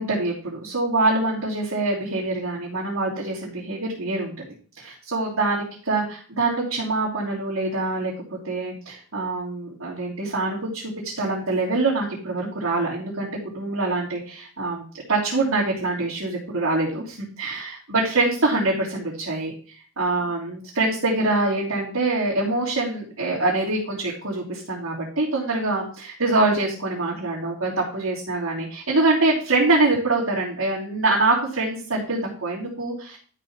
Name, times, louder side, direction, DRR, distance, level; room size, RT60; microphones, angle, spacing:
voice 1, 0.0-4.3 4.8-8.1 8.4-19.5 20.0-33.2, right 2 dB, 80° right, -7 dB, 3.2 m, -24 dB
12.0 x 5.3 x 4.3 m, 0.42 s
head